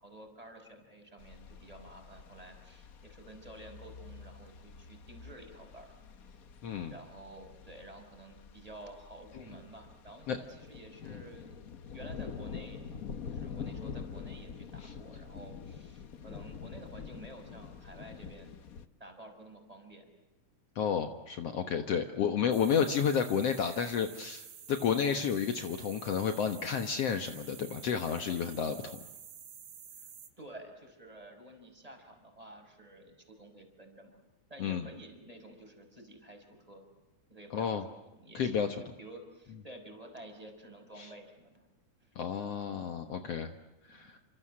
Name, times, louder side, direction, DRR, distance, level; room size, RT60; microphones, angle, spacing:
voice 1, 0.0-5.9 6.9-18.5 19.0-20.1 21.9-22.3 30.4-34.2 34.5-36.9 37.3-38.6 38.8-41.7 42.0-42.1 43.2-43.4 43.9-44.1, right 1 dB, 10° right, 4 dB, 5.5 m, -51 dB
sound 1, 1.2-18.9, left 6 dB, 75° left, 0.7 m, -46 dB
voice 2, 6.6-6.9 10.3-10.4 11.1-11.2 14.8-14.9 20.8-29.0 34.6-34.9 37.5-37.8 38.3-38.7 41.0-41.1 42.2-43.5 43.9-44.2, left 7 dB, 60° left, 7 dB, 2.2 m, -31 dB
sound 2, 22.5-30.3, right 8 dB, 65° right, 3.1 m, -50 dB
29.0 x 27.0 x 7.6 m, 1.0 s
omnidirectional pair, 3.4 m